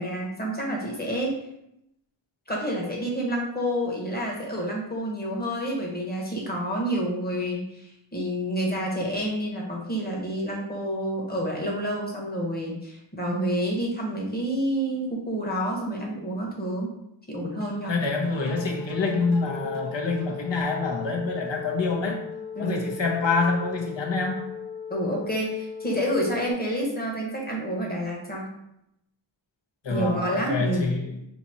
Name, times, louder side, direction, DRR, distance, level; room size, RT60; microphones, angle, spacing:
voice 1, 0.0-1.4 2.5-16.9 17.3-17.9 22.5-22.8 24.9-28.5 29.9-31.0, equal, 20° left, -2 dB, 1.2 m, -29 dB
sound 1, 17.6-22.7, right 1 dB, 55° right, 0.9 m, -47 dB
voice 2, 17.9-22.2 22.6-24.5 29.8-31.2, left 3 dB, 60° left, 1 dB, 1.0 m, -26 dB
sound 2, 18.3-26.5, left 7 dB, 85° left, 1.2 m, -38 dB
5.9 x 2.8 x 2.9 m, 0.82 s
wide cardioid pair, 85°, 49 cm